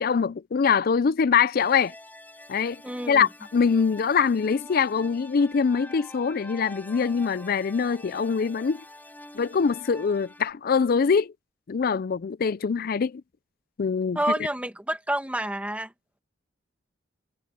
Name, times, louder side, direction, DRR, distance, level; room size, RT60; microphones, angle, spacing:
voice 1, 0.0-1.9 2.5-2.8 3.1-8.8 9.3-11.3 11.7-13.2 13.8-14.2, left 6 dB, 55° left, 0.4 m, -23 dB
sound 1, 1.6-10.5, left 1 dB, 10° left, 7.3 m, -46 dB
voice 2, 2.8-3.3 14.1-15.9, right 1 dB, 5° right, 1.6 m, -28 dB
head